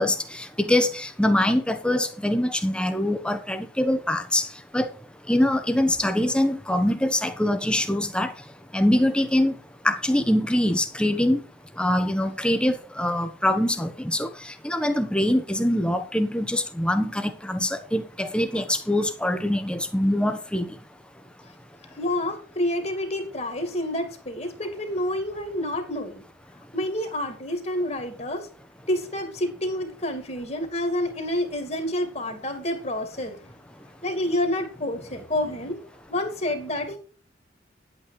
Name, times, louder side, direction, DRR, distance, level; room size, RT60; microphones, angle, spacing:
voice 1, 0.0-4.5 4.7-4.9 5.3-8.3 8.7-9.6 9.8-11.4 11.8-20.7, left 1 dB, 5° left, 1.3 m, -24 dB
voice 2, 21.9-26.2 26.7-28.5 28.9-33.5 34.0-37.0, left 1 dB, 35° left, 2.3 m, -28 dB
11.0 x 8.7 x 4.9 m
head